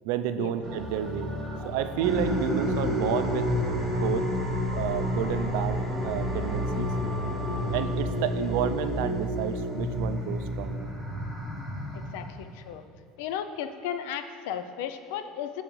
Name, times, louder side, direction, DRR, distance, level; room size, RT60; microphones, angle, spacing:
voice 1, 0.0-1.3 1.6-3.5 4.0-4.3 4.7-6.9 7.7-10.9, right 9 dB, 70° right, 10 dB, 0.3 m, -30 dB
sound 1, 0.6-7.9, left 1 dB, 20° right, 0.8 m, -35 dB
sound 2, 2.0-12.6, left 1 dB, 10° left, 0.9 m, -30 dB
voice 2, 11.9-12.8 13.2-15.6, left 9 dB, 80° left, 9 dB, 0.4 m, -35 dB
7.6 x 6.1 x 3.1 m, 2.2 s
cardioid pair, 180°, 0 cm